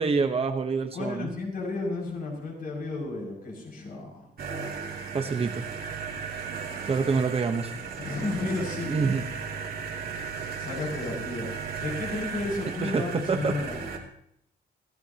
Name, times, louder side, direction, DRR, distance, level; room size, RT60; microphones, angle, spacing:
voice 1, 0.0-1.3 5.1-5.7 6.9-7.7 8.9-9.2 12.8-13.5, right 5 dB, 35° right, 5 dB, 1.1 m, -26 dB
voice 2, 0.9-4.3 8.0-9.0 10.6-11.5 11.8-13.8, left 2 dB, 55° left, -1 dB, 6.8 m, -32 dB
sound 1, 4.4-14.0, right 5 dB, 60° right, 2.9 m, -35 dB
26.5 x 16.5 x 2.9 m, 0.72 s
wide cardioid pair, 175°, 18 cm